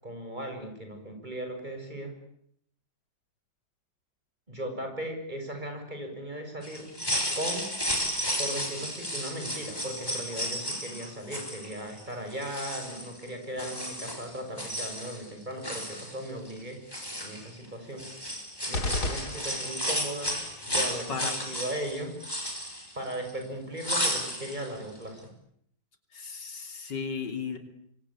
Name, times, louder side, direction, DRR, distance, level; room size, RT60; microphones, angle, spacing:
voice 1, 0.0-2.1 4.5-6.9 7.3-7.7 8.4-16.8 17.2-18.1 18.7-20.3 20.7-22.2 23.0-25.3, right 1 dB, 25° right, 5 dB, 7.0 m, -37 dB
sound 1, 6.6-12.0 12.3-13.3 13.6-15.3 15.5-16.6 16.9-17.7 18.0-23.4 23.8-24.7 25.0-25.1, equal, 10° left, 6.0 m, -33 dB
sound 2, 18.7-20.0, left 2 dB, 65° left, 3.5 m, -32 dB
voice 2, 21.1-21.4 26.1-27.6, left 5 dB, 85° left, 6 dB, 3.8 m, -35 dB
25.5 x 25.0 x 8.8 m, 0.71 s
omnidirectional pair, 1.8 m